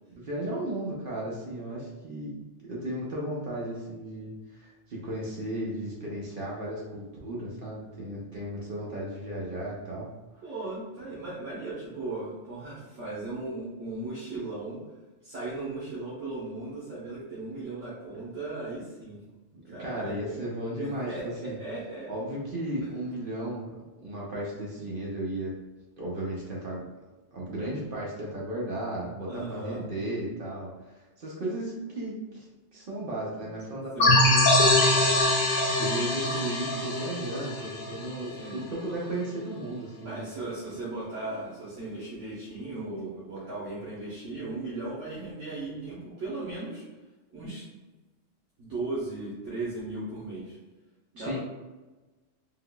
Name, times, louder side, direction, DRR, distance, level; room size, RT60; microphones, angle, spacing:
voice 1, 0.1-2.4 2.6-10.1 19.8-21.6 22.1-25.5 26.0-26.8 27.3-35.5 35.8-40.2 51.2-51.4, right 1 dB, 55° right, -5 dB, 0.8 m, -35 dB
voice 2, 10.4-14.8 15.2-19.2 19.7-20.4 20.8-22.1 22.8-22.9 29.3-29.8 33.9-34.2 38.4-38.7 40.0-46.8 47.3-47.6 48.6-50.6 51.1-51.4, right 2 dB, 80° right, -9 dB, 1.3 m, -37 dB
sound 1, 34.0-38.5, left 1 dB, 75° left, 0.9 m, -23 dB
3.7 x 2.8 x 2.2 m, 1.2 s
omnidirectional pair, 1.3 m